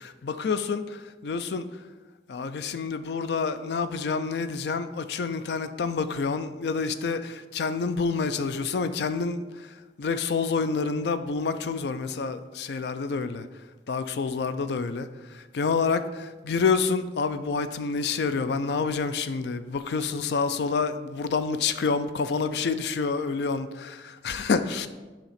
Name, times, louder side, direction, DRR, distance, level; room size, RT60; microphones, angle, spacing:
voice 1, 0.2-1.7 2.3-13.5 13.9-16.0 16.4-24.9, left 5 dB, 70° left, 11 dB, 0.4 m, -28 dB
7.0 x 2.9 x 5.7 m, 1.2 s
head